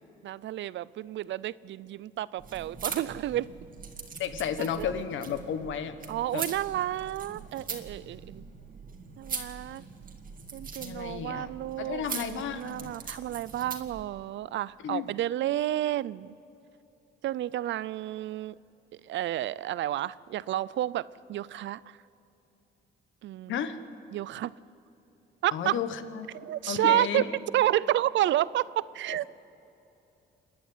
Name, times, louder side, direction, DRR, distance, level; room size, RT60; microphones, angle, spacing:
voice 1, 0.2-3.5 4.6-4.9 6.1-8.4 9.2-9.8 10.5-16.3 17.2-18.5 19.1-21.8 23.2-23.6 24.1-24.5 25.4-25.8 26.3-27.2 27.5-29.2, right 13 dB, 70° right, 20 dB, 0.5 m, -30 dB
sound 1, 2.4-14.0, right 5 dB, 45° right, 2.1 m, -41 dB
voice 2, 4.2-5.9 6.3-6.5 10.8-11.5 11.8-12.9 14.8-15.1 23.5-23.8 25.5-26.3 26.7-27.3, left 8 dB, 75° left, 10 dB, 1.3 m, -32 dB
27.5 x 11.5 x 9.2 m, 2.9 s
cardioid pair, 90°, 20 cm